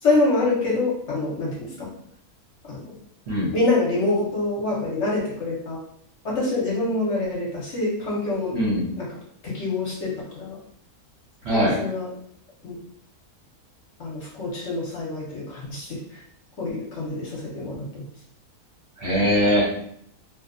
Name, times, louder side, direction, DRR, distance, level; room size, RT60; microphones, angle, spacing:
voice 1, 0.0-1.9 2.7-2.9 3.5-5.8 6.2-8.5 9.0-9.1 9.4-10.6 11.5-12.1 12.6-12.8 14.0-16.2 16.6-18.0, left 2 dB, 60° left, -5 dB, 0.8 m, -26 dB
voice 2, 8.5-8.9 11.4-11.7 19.0-19.6, equal, 60° right, -6 dB, 0.7 m, -21 dB
2.6 x 2.1 x 2.5 m, 0.70 s
omnidirectional pair, 1.6 m